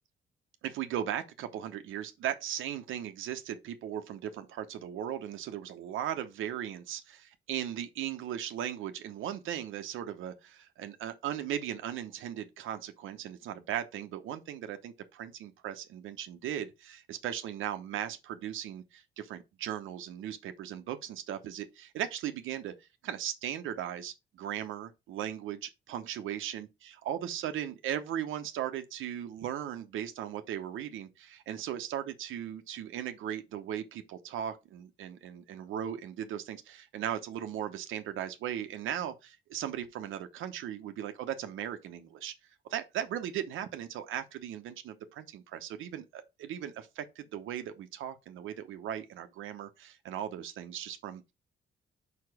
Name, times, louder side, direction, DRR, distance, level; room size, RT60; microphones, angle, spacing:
voice 1, 0.6-22.7 23.0-42.3 42.7-51.3, right 10 dB, 80° right, 0.9 m, -37 dB
5.1 x 4.9 x 4.8 m
cardioid pair, 90°, 20 cm